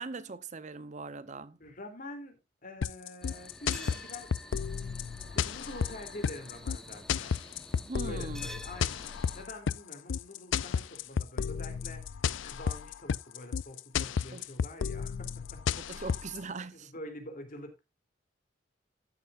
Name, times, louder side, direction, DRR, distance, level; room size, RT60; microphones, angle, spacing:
voice 1, 0.0-1.6 7.8-8.5 14.3-14.5 15.9-16.9, right 3 dB, 40° right, 0.7 m, -40 dB
voice 2, 1.6-2.4 2.6-4.5 5.3-7.3 8.0-16.1 16.6-17.8, left 1 dB, 45° left, 3.0 m, -46 dB
sound 1, 2.8-16.4, left 7 dB, 80° left, 0.4 m, -32 dB
sound 2, 3.2-9.4, left 1 dB, 5° left, 1.0 m, -49 dB
13.0 x 10.5 x 2.5 m
head